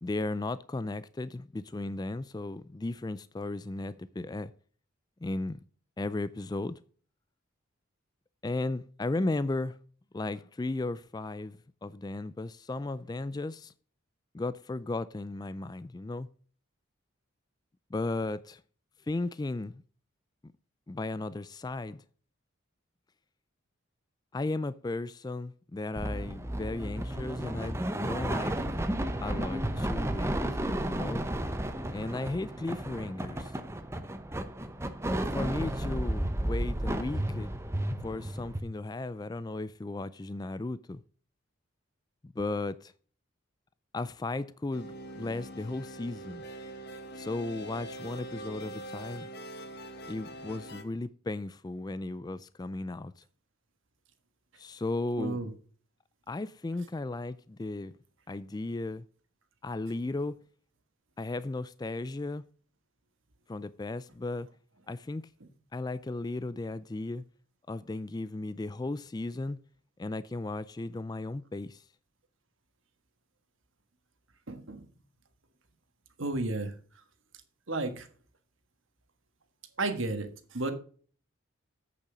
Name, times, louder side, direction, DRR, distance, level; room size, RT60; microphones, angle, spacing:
voice 1, 0.0-4.5 5.2-5.6 6.0-6.8 8.4-9.8 10.1-13.7 14.3-16.3 17.9-18.6 19.1-19.8 20.9-22.0 24.3-28.8 29.2-30.4 30.8-31.2 31.9-33.5 35.3-37.5 38.0-41.0 42.2-42.9 43.9-46.4 47.2-49.3 50.1-53.1 54.6-55.5 56.3-57.9 58.3-59.0 59.6-60.4 61.2-62.4 63.5-64.5 64.9-65.2 65.7-67.2 67.7-69.6 70.0-71.8, left 2 dB, 20° left, 0.3 m, -35 dB
sound 1, 25.9-38.6, right 1 dB, 10° right, 0.7 m, -33 dB
sound 2, 44.7-50.8, right 1 dB, 50° left, 1.2 m, -43 dB
voice 2, 55.2-55.5 74.5-74.9 76.2-76.7 77.7-78.1 79.8-80.7, right 2 dB, 65° right, 1.6 m, -32 dB
8.2 x 6.9 x 5.0 m
head